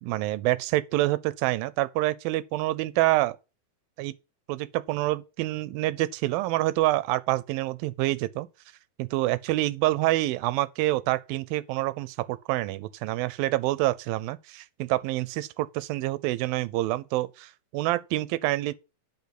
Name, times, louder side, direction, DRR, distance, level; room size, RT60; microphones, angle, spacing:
voice 1, 0.0-3.4 4.0-4.1 4.5-8.5 9.0-18.7, right 17 dB, 85° right, 2.4 m, -27 dB
10.5 x 5.3 x 6.0 m
omnidirectional pair, 4.1 m